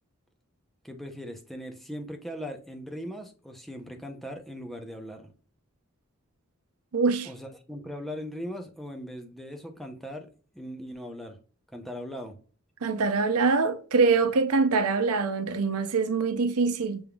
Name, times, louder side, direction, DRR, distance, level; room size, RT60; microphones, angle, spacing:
voice 1, 0.8-5.3 7.2-10.3 10.5-11.4 11.7-12.4, equal, ahead, 0.6 m, -39 dB
voice 2, 6.9-7.3 12.8-17.0, right 4 dB, 90° right, 0.6 m, -24 dB
6.0 x 3.5 x 2.3 m
head